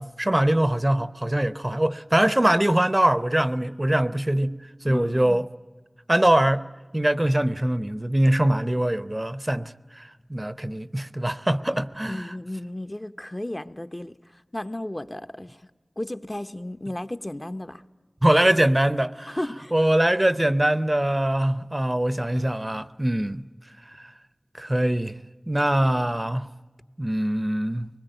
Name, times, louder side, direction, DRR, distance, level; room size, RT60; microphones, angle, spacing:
voice 1, 0.0-4.5 4.8-5.4 6.1-6.6 6.9-12.3 18.2-19.4 19.7-23.4 24.5-25.2 25.5-26.5 27.0-27.9, right 1 dB, 25° right, 0.7 m, -23 dB
voice 2, 4.9-5.4 11.7-15.7 16.0-17.8 19.3-19.7, left 1 dB, 30° left, 0.9 m, -34 dB
23.5 x 21.0 x 9.1 m
wide cardioid pair, 50°, 0 cm